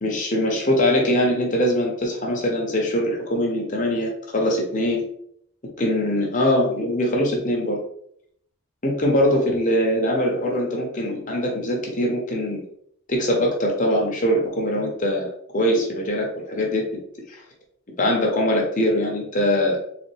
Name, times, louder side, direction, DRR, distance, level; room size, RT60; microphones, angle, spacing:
voice 1, 0.0-5.0 5.8-7.8 8.8-12.6 13.1-16.8 17.3-17.4 18.0-19.8, equal, 35° left, 0 dB, 0.9 m, -22 dB
3.5 x 3.4 x 3.3 m, 0.69 s
head